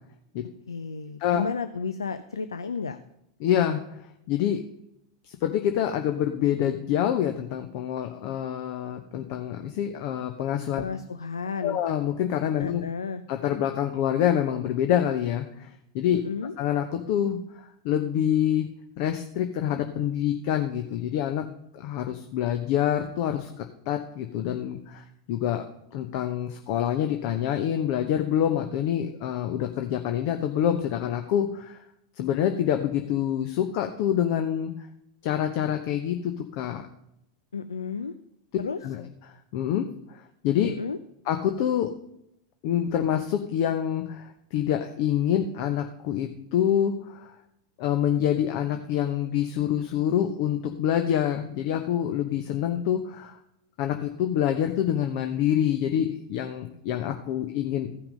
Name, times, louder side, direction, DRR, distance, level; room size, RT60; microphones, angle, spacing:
voice 1, 0.7-3.0 10.8-11.8 12.6-13.2 16.1-16.5 37.5-38.1 38.6-38.8 40.6-41.0, left 5 dB, 85° left, 11 dB, 0.5 m, -32 dB
voice 2, 3.4-4.0 4.3-4.6 5.2-10.8 11.6-12.8 13.3-16.2 16.6-18.7 19.0-21.4 21.7-25.6 25.9-31.8 32.2-34.7 35.2-36.8 38.8-40.7 41.3-41.9 42.6-47.3 47.8-53.4 53.8-57.9, left 10 dB, 55° left, 6 dB, 0.9 m, -26 dB
15.0 x 5.9 x 5.2 m, 0.80 s
hypercardioid pair, 95°, 2 cm